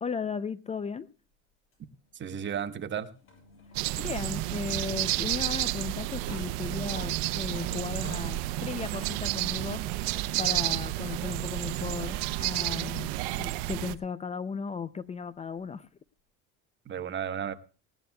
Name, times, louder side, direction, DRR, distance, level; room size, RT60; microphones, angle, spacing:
voice 1, 0.0-1.1 4.0-9.8 10.4-13.1 13.4-15.9, left 5 dB, 20° left, 0.5 m, -36 dB
sound 1, 1.7-10.6 11.1-11.3 12.6-12.7 15.6-15.7, left 3 dB, 45° left, 6.6 m, -53 dB
voice 2, 2.1-3.1 16.9-17.5, right 8 dB, 40° right, 1.1 m, -33 dB
sound 2, 3.7-13.9, right 17 dB, 90° right, 0.7 m, -31 dB
19.0 x 17.0 x 2.3 m
cardioid pair, 115°, 30 cm